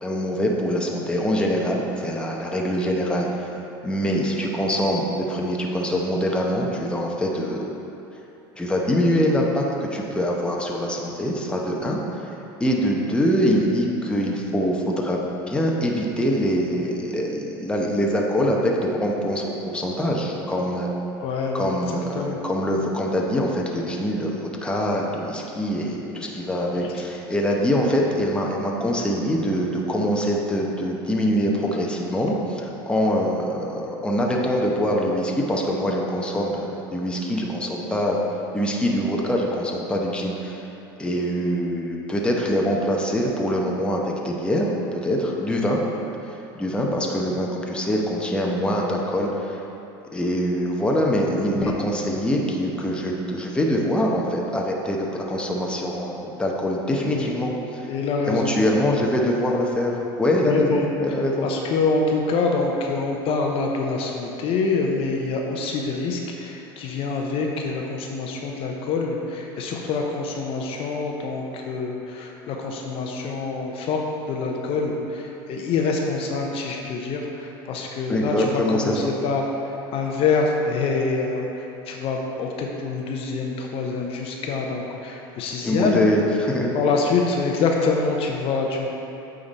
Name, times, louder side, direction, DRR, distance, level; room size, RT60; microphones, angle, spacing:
voice 1, 0.0-3.5 3.8-7.7 8.6-12.3 12.6-20.9 21.5-24.3 24.6-38.2 38.5-40.7 41.0-45.8 46.6-49.6 50.1-57.9 58.3-61.5 78.1-79.1 85.6-86.7, equal, 10° left, -2 dB, 0.9 m, -24 dB
voice 2, 21.2-21.8 22.1-22.4 26.8-26.9 51.5-51.7 57.1-57.2 57.9-58.6 60.4-60.9 61.4-86.0 86.7-88.9, left 4 dB, 50° left, 1 dB, 0.8 m, -26 dB
8.6 x 3.9 x 4.1 m, 2.9 s
supercardioid pair, 95°, 12 cm